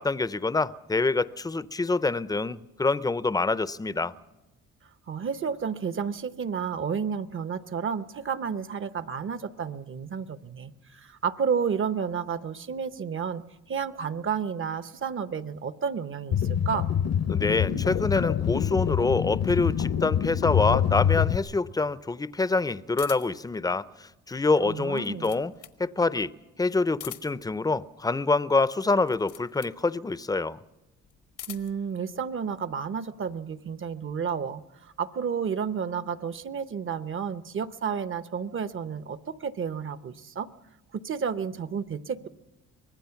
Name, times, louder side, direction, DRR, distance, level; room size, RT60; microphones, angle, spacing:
voice 1, 0.0-4.1 17.3-25.5 25.8-26.3 26.6-30.6, left 3 dB, 10° left, 0.6 m, -26 dB
voice 2, 5.1-16.9 24.6-25.3 31.5-40.5 40.9-42.3, right 6 dB, 40° right, 0.9 m, -31 dB
sound 1, 16.3-21.4, left 9 dB, 55° left, 0.9 m, -25 dB
sound 2, 23.0-23.5 24.8-25.8 26.9-27.5 29.0-29.8 31.0-31.8, left 11 dB, 80° left, 1.4 m, -43 dB
24.5 x 18.5 x 5.8 m
cardioid pair, 90°, 30 cm